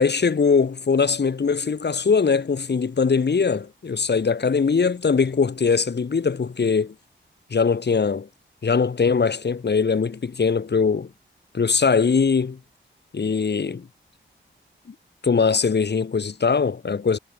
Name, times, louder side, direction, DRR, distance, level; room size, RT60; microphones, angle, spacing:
voice 1, 0.0-6.9 7.5-8.3 8.6-11.1 11.5-12.6 13.1-13.9 15.2-17.2, left 5 dB, 60° left, 7.9 m, -21 dB
wide cardioid pair, 135°, 20 cm